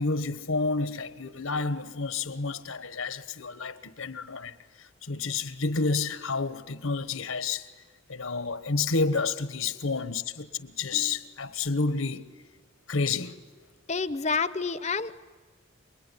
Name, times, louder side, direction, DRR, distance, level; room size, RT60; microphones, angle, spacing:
voice 1, 0.0-7.7 8.1-12.2 12.9-13.4, left 4 dB, 75° left, 1.3 m, -30 dB
voice 2, 13.9-15.1, left 4 dB, 30° left, 0.7 m, -28 dB
28.0 x 21.5 x 9.9 m
head